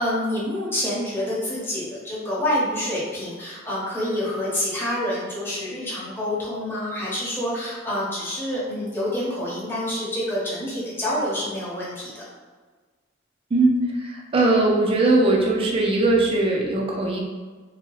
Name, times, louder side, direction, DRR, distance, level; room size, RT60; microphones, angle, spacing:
voice 1, 0.0-12.2, left 1 dB, 10° left, -8 dB, 0.9 m, -27 dB
voice 2, 13.5-17.2, right 2 dB, 30° right, -1 dB, 0.4 m, -20 dB
2.8 x 2.3 x 3.0 m, 1.4 s
head